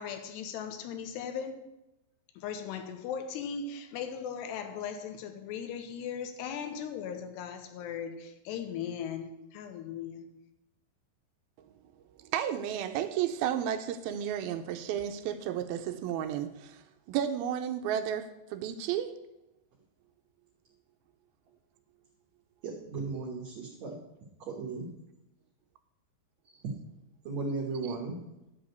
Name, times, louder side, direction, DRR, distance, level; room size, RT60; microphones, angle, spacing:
voice 1, 0.0-1.6 2.4-10.3, left 7 dB, 85° left, 3.0 m, -38 dB
voice 2, 12.2-19.1, right 10 dB, 80° right, 2.2 m, -33 dB
voice 3, 22.6-24.0 24.4-24.9 27.3-28.1, right 4 dB, 65° right, 1.9 m, -36 dB
11.5 x 5.0 x 8.0 m
omnidirectional pair, 4.9 m